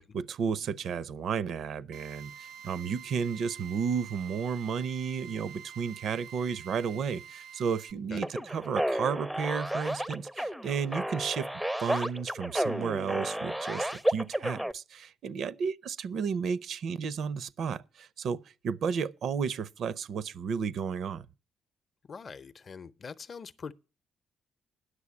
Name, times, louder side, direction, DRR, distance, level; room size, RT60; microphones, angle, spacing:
voice 1, 0.0-11.5 11.8-21.3, right 6 dB, 65° right, 0.5 m, -33 dB
Drill, 1.9-7.9, right 8 dB, 85° right, 0.9 m, -47 dB
sound 1, 8.2-14.7, right 1 dB, 5° right, 0.5 m, -32 dB
voice 2, 22.1-23.7, left 5 dB, 45° left, 0.6 m, -43 dB
9.8 x 6.4 x 8.4 m
cardioid pair, 90°, 0 cm